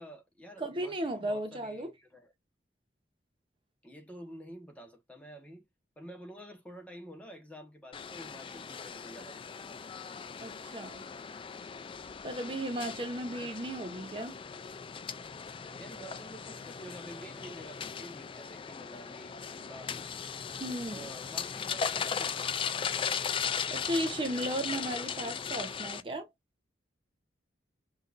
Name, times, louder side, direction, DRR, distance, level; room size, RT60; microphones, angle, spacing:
voice 1, 0.0-2.3 3.8-5.6 6.0-9.4 13.4-13.5 15.8-19.9 20.9-22.6, right 1 dB, 10° left, 1.1 m, -49 dB
voice 2, 0.6-1.9 10.4-11.1 12.2-14.4 20.6-21.1 23.7-26.3, right 1 dB, 30° right, 0.7 m, -35 dB
sound 1, 7.9-26.0, left 6 dB, 30° left, 0.3 m, -38 dB
5.5 x 2.6 x 2.5 m
head